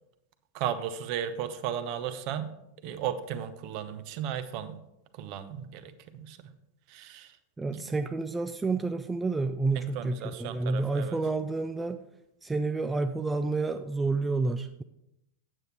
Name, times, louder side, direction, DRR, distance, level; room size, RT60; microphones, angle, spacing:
voice 1, 0.5-2.5 2.8-4.8 5.2-6.5 6.9-7.3 7.7-7.9 9.8-11.2, right 9 dB, 45° right, 11 dB, 0.8 m, -35 dB
voice 2, 7.6-12.0 12.4-14.8, right 3 dB, 10° right, 8 dB, 0.4 m, -29 dB
9.0 x 8.0 x 4.2 m, 0.87 s
figure-of-eight pair, 90°, 0 cm